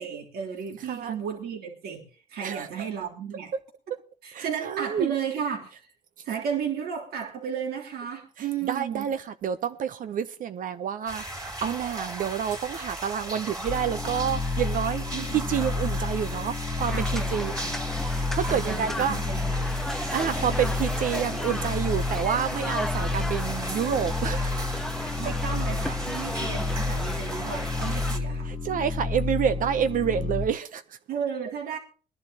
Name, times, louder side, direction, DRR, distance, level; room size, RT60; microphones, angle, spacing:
voice 1, 0.0-2.0 2.3-3.5 4.2-5.8 6.2-9.0 15.1-15.5 16.9-17.8 18.5-19.8 25.2-28.6 31.1-31.8, right 7 dB, 70° right, 3.3 m, -33 dB
voice 2, 4.3-5.1 8.6-15.0 15.3-17.5 18.1-19.2 20.1-24.8 27.9-28.0 28.5-31.0, right 8 dB, 55° right, 0.8 m, -28 dB
sound 1, 11.1-28.2, right 1 dB, 20° right, 3.5 m, -37 dB
sound 2, 13.7-30.5, left 3 dB, 25° left, 1.5 m, -31 dB
sound 3, 16.8-28.1, left 1 dB, ahead, 0.7 m, -36 dB
22.0 x 11.0 x 2.9 m
cardioid pair, 110°, 17 cm